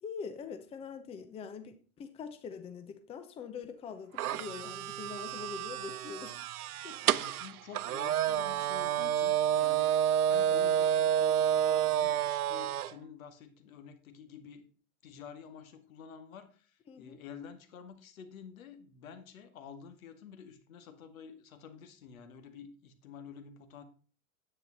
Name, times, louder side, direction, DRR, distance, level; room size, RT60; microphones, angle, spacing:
voice 1, 0.0-6.4 6.8-6.9 16.9-17.2, left 6 dB, 15° left, 9 dB, 0.8 m, -43 dB
sound 1, 4.2-12.9, right 10 dB, 85° right, 0.8 m, -29 dB
voice 2, 7.1-10.0 10.3-14.7 15.0-23.8, left 7 dB, 70° left, 9 dB, 2.1 m, -50 dB
10.5 x 9.1 x 4.1 m, 0.39 s
hypercardioid pair, 140°, 43 cm